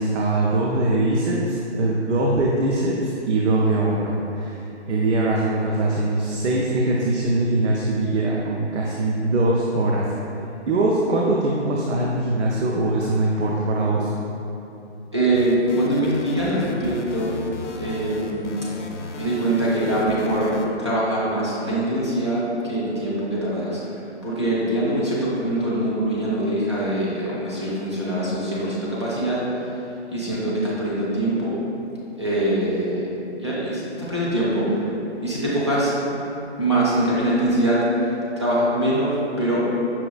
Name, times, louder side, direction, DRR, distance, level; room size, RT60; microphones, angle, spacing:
voice 1, 0.0-4.6 4.9-10.1 10.7-14.1, right 2 dB, 80° right, -3 dB, 0.5 m, -22 dB
voice 2, 15.1-17.3 17.7-18.5 19.2-20.5 20.8-23.8 24.2-29.4 30.1-31.6 32.2-33.1 33.4-34.8 35.2-35.9 36.6-37.9 38.4-39.7, right 1 dB, 25° right, -8 dB, 0.4 m, -23 dB
sound 1, 15.3-20.7, left 2 dB, 90° left, 0.5 m, -35 dB
5.6 x 2.4 x 2.3 m, 3.0 s
hypercardioid pair, 170°, 34 cm